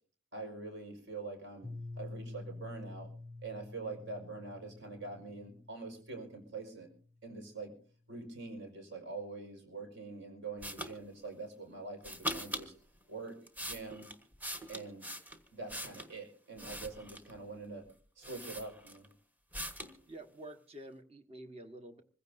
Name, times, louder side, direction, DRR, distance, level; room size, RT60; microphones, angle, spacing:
voice 1, 0.3-3.1 3.4-6.9 7.2-7.7 8.1-12.7 13.1-14.1 14.7-15.1 15.5-17.9 18.2-19.1, right 3 dB, 60° right, 4 dB, 5.1 m, -45 dB
Piano, 1.6-7.3, left 2 dB, 10° left, 0.6 m, -49 dB
sound 1, 10.6-10.9 12.0-12.7 13.3-16.1 16.6-17.4 17.9-18.0 18.2-19.1 19.5-20.0, equal, 10° right, 1.3 m, -41 dB
voice 2, 20.1-22.0, right 1 dB, 30° right, 6 dB, 1.5 m, -49 dB
26.0 x 15.5 x 2.7 m, 0.41 s
head